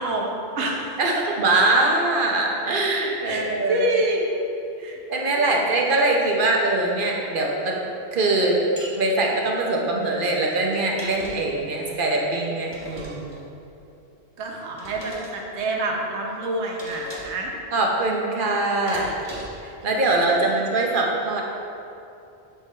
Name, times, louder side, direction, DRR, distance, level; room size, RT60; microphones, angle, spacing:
voice 1, 0.0-1.0 3.2-4.4 4.8-5.0 5.3-5.8 14.4-17.5 19.8-20.6, right 2 dB, 75° right, -1 dB, 1.1 m, -28 dB
voice 2, 1.0-3.9 4.8-7.8 8.1-8.6 9.0-13.4 17.7-19.1 19.6-21.4, right 2 dB, 50° right, -1 dB, 0.9 m, -22 dB
sound 1, 8.8-9.0 10.7-11.6 12.7-13.5 14.8-15.3 16.8-17.4 18.9-19.7, right 1 dB, 25° right, 1.3 m, -38 dB
7.4 x 3.5 x 4.1 m, 2.7 s
omnidirectional pair, 1.2 m